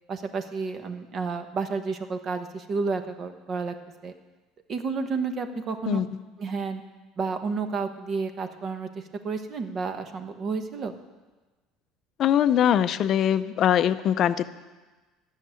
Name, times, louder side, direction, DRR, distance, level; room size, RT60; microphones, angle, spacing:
voice 1, 0.1-3.7 4.0-4.1 4.7-6.0 6.4-6.8 7.2-8.9 9.2-10.9, right 4 dB, 35° right, 8 dB, 1.1 m, -30 dB
voice 2, 12.2-14.5, left 10 dB, 40° left, 13 dB, 0.5 m, -22 dB
14.0 x 6.6 x 9.9 m, 1.2 s
cardioid pair, 145°, 0 cm